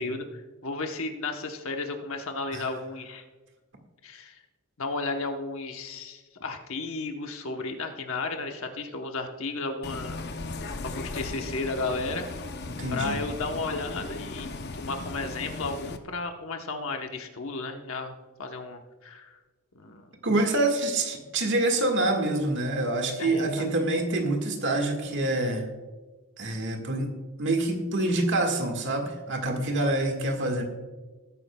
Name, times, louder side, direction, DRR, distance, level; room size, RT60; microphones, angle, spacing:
voice 1, 0.0-3.2 4.0-4.4 4.8-10.2 10.8-12.3 12.9-14.5 14.8-18.1 18.4-19.4 19.7-20.1 23.2-23.7, left 3 dB, 65° left, 4 dB, 1.0 m, -33 dB
Bus, 9.8-16.0, left 3 dB, 45° left, 0.7 m, -37 dB
voice 2, 12.7-13.2 20.2-25.7 26.4-27.1 27.4-30.6, right 2 dB, 55° right, 3 dB, 1.7 m, -26 dB
19.5 x 9.7 x 2.3 m, 1.3 s
head